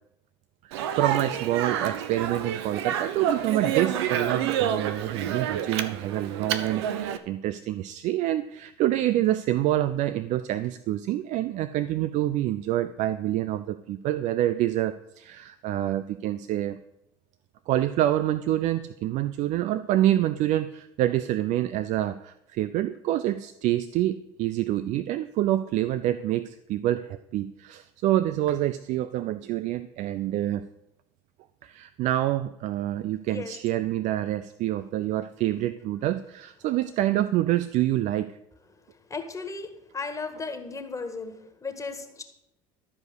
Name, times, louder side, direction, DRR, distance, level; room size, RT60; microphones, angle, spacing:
voice 1, 0.6-16.8 17.7-30.7 31.6-38.3, right 13 dB, 60° right, 13 dB, 0.6 m, -27 dB
Speech, 0.7-7.2, right 9 dB, 90° right, 0.9 m, -29 dB
voice 2, 39.1-39.7 39.9-42.2, left 4 dB, 25° left, 6 dB, 1.7 m, -35 dB
13.5 x 5.0 x 8.1 m, 0.81 s
supercardioid pair, 85°, 14 cm